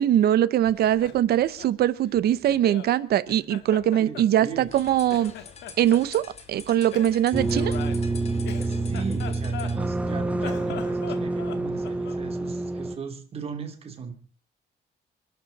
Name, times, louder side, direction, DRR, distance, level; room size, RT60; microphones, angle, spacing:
voice 1, 0.0-5.3 5.8-6.2 6.5-7.7, right 11 dB, 60° right, 16 dB, 0.9 m, -22 dB
Laughter, 0.6-2.9 3.3-4.8 5.1-6.3 6.9-10.0 10.3-12.3, left 9 dB, 75° left, 1.8 m, -41 dB
voice 2, 4.0-4.7 8.6-14.1, right 5 dB, 35° right, 5 dB, 3.0 m, -38 dB
sound 1, 4.6-9.8, left 6 dB, 35° left, 1.9 m, -46 dB
sound 2, 7.3-13.0, right 2 dB, 5° right, 1.2 m, -27 dB
26.5 x 11.5 x 4.2 m, 0.39 s
cardioid pair, 170°, 18 cm